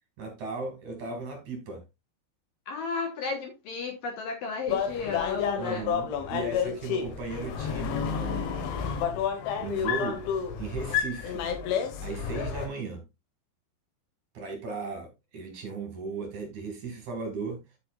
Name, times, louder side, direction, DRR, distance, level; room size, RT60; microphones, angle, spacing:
voice 1, 0.2-1.8 5.6-8.9 9.5-10.2 10.6-11.4 12.0-13.0 14.3-17.6, right 3 dB, 50° right, 3.1 m, -36 dB
voice 2, 2.7-5.9, left 5 dB, 65° left, 2.5 m, -33 dB
sound 1, 4.7-12.7, left 7 dB, 90° left, 4.0 m, -30 dB
10.5 x 8.5 x 2.5 m
omnidirectional pair, 5.2 m